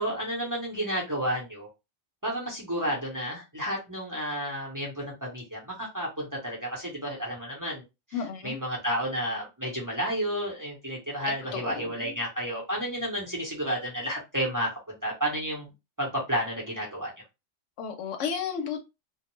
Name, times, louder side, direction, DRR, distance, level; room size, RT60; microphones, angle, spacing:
voice 1, 0.0-1.7 2.2-7.8 8.4-15.7 16.0-17.1, equal, 20° right, -4 dB, 0.7 m, -31 dB
voice 2, 8.1-8.6 11.3-12.2 17.8-18.8, left 7 dB, 75° left, 7 dB, 0.9 m, -33 dB
2.4 x 2.1 x 3.0 m, 0.25 s
omnidirectional pair, 1.3 m